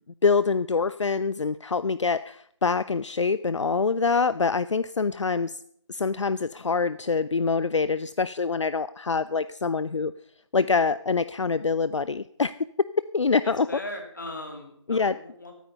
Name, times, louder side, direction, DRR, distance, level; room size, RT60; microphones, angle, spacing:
voice 1, 0.2-5.6 5.9-10.1 10.5-12.5 13.1-13.7 14.9-15.2, left 4 dB, 70° left, 17 dB, 0.4 m, -25 dB
voice 2, 13.4-15.5, left 1 dB, 40° left, 3 dB, 2.7 m, -39 dB
12.5 x 9.2 x 6.5 m, 0.67 s
figure-of-eight pair, 175°, 16 cm